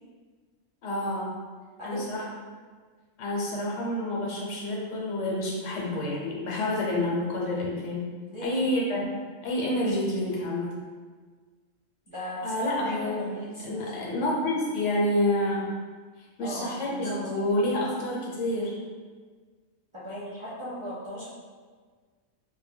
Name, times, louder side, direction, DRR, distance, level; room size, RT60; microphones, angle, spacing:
voice 1, 0.8-1.3 1.8-2.3 3.2-8.1 8.4-9.0 9.4-10.7 12.4-13.3 13.6-15.7 16.2-18.8, left 1 dB, 65° left, -4 dB, 1.0 m, -28 dB
voice 2, 8.3-8.8 12.1-14.3 16.4-17.5 19.9-21.3, equal, 45° right, -10 dB, 0.4 m, -38 dB
2.7 x 2.2 x 3.4 m, 1.5 s
omnidirectional pair, 1.4 m